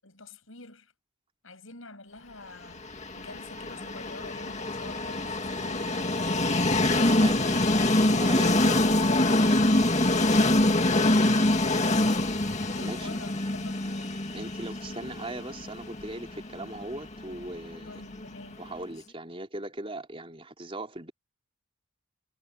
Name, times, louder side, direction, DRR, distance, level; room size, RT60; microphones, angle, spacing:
voice 1, 0.0-0.9 1.4-6.4 12.7-14.2 17.8-18.7, left 2 dB, 70° left, 7.5 m, -47 dB
Train, 2.8-18.7, left 1 dB, 35° left, 2.1 m, -25 dB
voice 2, 7.1-7.8 8.1-8.9 12.8-13.2 14.3-18.0 18.6-21.1, right 1 dB, 25° right, 4.0 m, -39 dB
head